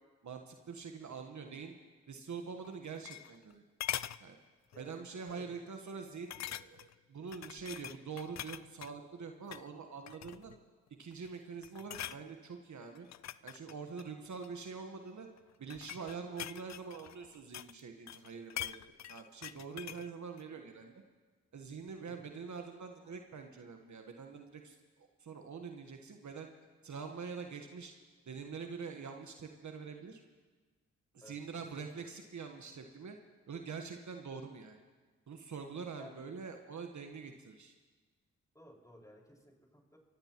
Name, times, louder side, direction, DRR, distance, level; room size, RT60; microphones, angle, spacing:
voice 1, 0.2-1.7 2.1-3.6 4.2-4.4 4.8-10.5 11.0-13.1 13.4-15.3 15.6-18.8 19.1-20.9 21.5-26.5 26.8-27.9 28.3-30.2 31.1-33.2 33.5-34.8 35.3-37.7, right 5 dB, 55° right, 5 dB, 1.3 m, -45 dB
sound 1, 2.6-3.5 3.8-4.2 4.7-4.9 5.3-5.4 6.3-6.9 7.3-8.9 9.4-9.7 10.1-10.6 11.1-11.4 11.6-12.2 12.9-14.6 15.4-17.8 18.1-20.1 20.4-20.5, left 12 dB, 50° left, 0.4 m, -43 dB
voice 2, 4.7-5.6 19.9-20.0 22.0-22.2 31.2-31.4 35.9-36.2 38.5-40.0, left 1 dB, 10° left, -1 dB, 5.1 m, -57 dB
24.5 x 15.5 x 3.0 m, 1.4 s
supercardioid pair, 40°, 34 cm